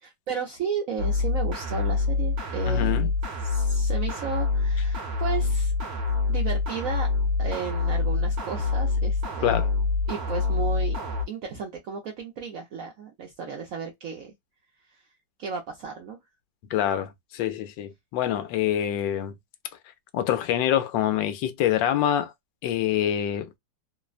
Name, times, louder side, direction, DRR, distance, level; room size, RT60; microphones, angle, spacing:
voice 1, 0.0-3.1 3.4-5.7 6.3-7.1 7.4-9.6 10.1-11.0 11.3-14.3 14.9-15.1 15.4-16.2, right 6 dB, 70° right, 0.8 m, -34 dB
sound 1, 1.0-11.2, left 4 dB, 45° right, 1.0 m, -26 dB
voice 2, 2.7-3.1 9.4-9.7 16.7-19.3 20.1-22.3 22.6-23.6, left 11 dB, 80° left, 1.2 m, -25 dB
3.2 x 2.1 x 2.3 m
omnidirectional pair, 2.1 m